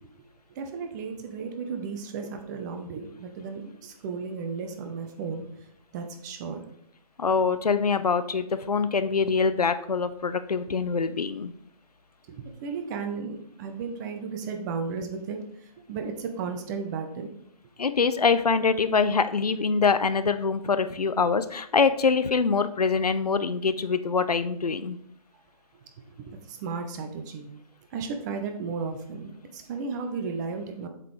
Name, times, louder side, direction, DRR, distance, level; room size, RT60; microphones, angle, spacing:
voice 1, 0.5-5.5 5.9-6.7 10.6-10.7 12.3-17.3 26.2-27.5 27.9-30.9, right 5 dB, 30° right, 6 dB, 0.8 m, -34 dB
voice 2, 7.2-11.5 17.8-25.0, left 5 dB, 85° left, 12 dB, 0.5 m, -24 dB
7.4 x 4.0 x 3.2 m, 0.70 s
figure-of-eight pair, 135°, 19 cm